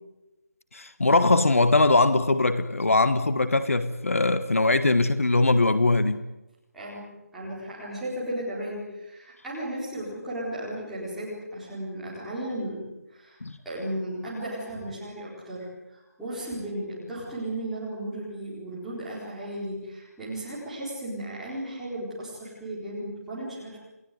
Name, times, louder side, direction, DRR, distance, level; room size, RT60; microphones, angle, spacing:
voice 1, 0.7-6.2 13.4-13.6, left 2 dB, 55° left, 12 dB, 1.5 m, -21 dB
voice 2, 6.7-23.8, right 1 dB, ahead, -10 dB, 4.4 m, -35 dB
29.0 x 19.0 x 9.3 m, 1.0 s
figure-of-eight pair, 180°, 9 cm